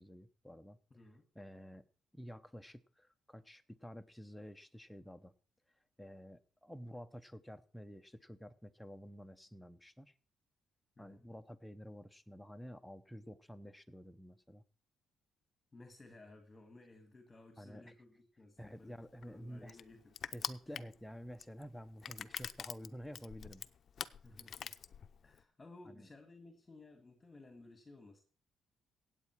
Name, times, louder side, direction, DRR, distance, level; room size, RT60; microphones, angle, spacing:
voice 1, 0.0-0.8 1.3-1.8 2.1-5.3 6.0-10.1 11.0-14.6 17.6-17.9 18.6-19.8 20.3-23.6 25.9-26.1, equal, 5° left, 9 dB, 0.9 m, -50 dB
voice 2, 0.9-1.2 11.0-11.2 15.7-20.2 20.7-20.8 24.2-24.8 25.2-28.2, left 2 dB, 20° left, 6 dB, 2.2 m, -57 dB
Crushing, 18.6-25.4, left 7 dB, 55° left, 0.6 m, -45 dB
16.5 x 8.4 x 4.8 m, 0.41 s
cardioid pair, 90°, 0 cm